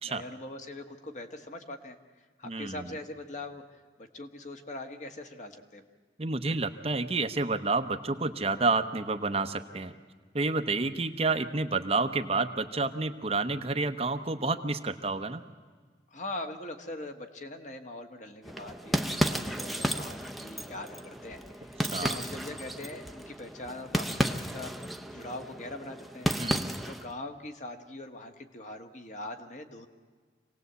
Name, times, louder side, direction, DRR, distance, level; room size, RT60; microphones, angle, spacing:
voice 1, 0.0-2.0 2.4-5.9 16.1-26.3 26.8-29.9, left 2 dB, 45° left, 5 dB, 1.6 m, -42 dB
voice 2, 2.4-2.8 6.2-9.9 10.3-15.4 21.9-22.1 26.4-26.8, right 3 dB, 35° right, 8 dB, 0.9 m, -29 dB
sound 1, 18.4-27.1, equal, ahead, 0.8 m, -33 dB
26.5 x 18.5 x 8.1 m, 1.5 s
head